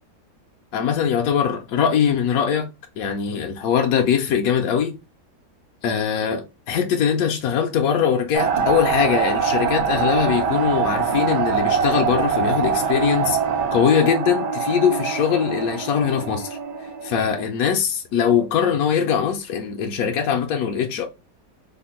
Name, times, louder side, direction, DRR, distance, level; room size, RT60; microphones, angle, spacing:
voice 1, 0.7-2.7 3.0-4.9 5.8-13.4 13.7-16.6 17.0-21.1, left 8 dB, 70° left, 0.9 m, -21 dB
sound 1, 8.3-17.4, right 6 dB, 75° right, 1.4 m, -23 dB
3.4 x 2.1 x 4.1 m
omnidirectional pair, 1.8 m